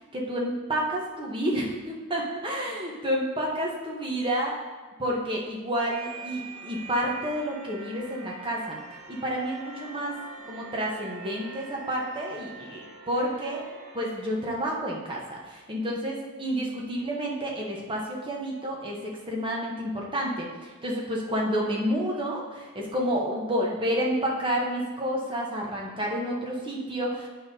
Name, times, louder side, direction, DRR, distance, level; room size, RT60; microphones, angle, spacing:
voice 1, 0.0-4.5 5.0-8.8 9.1-10.2 10.5-13.6 13.9-27.3, equal, 25° right, -2 dB, 1.1 m, -30 dB
sound 1, 5.9-14.3, right 4 dB, 80° right, 1.5 m, -44 dB
8.6 x 5.8 x 2.8 m, 1.3 s
head